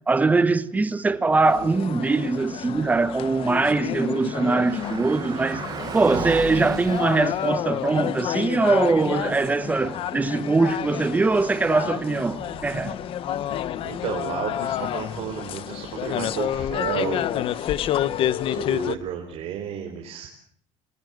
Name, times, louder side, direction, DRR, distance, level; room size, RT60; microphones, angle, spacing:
voice 1, 0.1-5.6 5.9-13.0 18.5-18.6, right 3 dB, 15° right, 1.3 m, -22 dB
sound 1, 1.4-19.0, left 11 dB, 50° left, 1.1 m, -29 dB
Car passing by, 3.2-19.3, right 7 dB, 35° right, 1.9 m, -40 dB
voice 2, 13.8-17.7 18.4-20.3, right 9 dB, 60° right, 4.4 m, -32 dB
27.5 x 20.5 x 7.8 m
cardioid pair, 150°, 12 cm